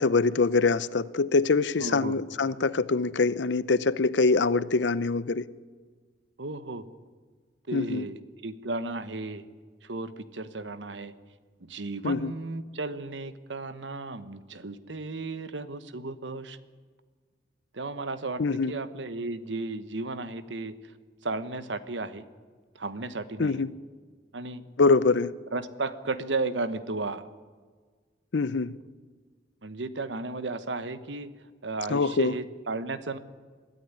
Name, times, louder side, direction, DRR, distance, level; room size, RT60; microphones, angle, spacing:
voice 1, 0.0-5.5 7.7-8.0 12.0-12.3 18.4-18.7 23.4-23.7 24.8-25.3 28.3-28.7 31.9-32.3, left 4 dB, 75° left, 0.7 m, -24 dB
voice 2, 1.8-2.2 6.4-6.8 7.7-8.2 8.4-9.5 9.8-11.1 11.6-16.6 17.7-20.7 21.2-22.2 22.7-23.6 24.3-24.6 25.5-27.2 29.6-31.3 31.6-33.2, right 3 dB, 85° right, 1.2 m, -34 dB
22.0 x 13.5 x 9.7 m
head